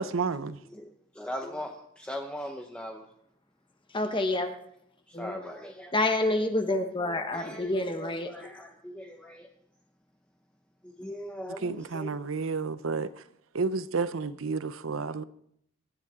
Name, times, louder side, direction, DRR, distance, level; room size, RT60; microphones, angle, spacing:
voice 1, 0.0-0.6 11.5-13.2 13.5-15.2, right 4 dB, 70° right, 0.7 m, -31 dB
voice 2, 0.7-3.0 5.1-5.9 7.3-9.5 10.8-12.1, equal, 5° left, 0.8 m, -40 dB
voice 3, 3.9-4.5 5.1-5.4 5.9-8.5, left 2 dB, 25° left, 1.1 m, -28 dB
23.5 x 10.5 x 3.7 m
head